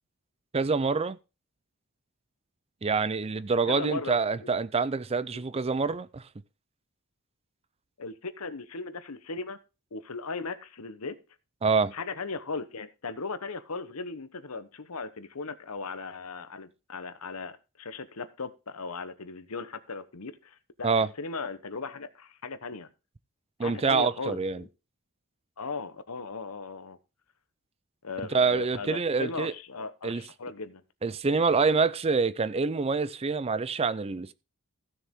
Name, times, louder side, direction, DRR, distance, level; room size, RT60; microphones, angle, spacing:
voice 1, 0.5-1.2 2.8-6.2 11.6-11.9 20.8-21.1 23.6-24.6 28.3-29.5 30.0-30.2 31.0-34.3, right 4 dB, 25° right, 0.4 m, -26 dB
voice 2, 3.7-4.5 5.3-5.4 8.0-9.6 9.9-11.2 11.9-22.9 23.6-24.7 25.6-27.0 28.0-30.8, left 4 dB, 75° left, 1.0 m, -37 dB
15.5 x 6.7 x 3.6 m
head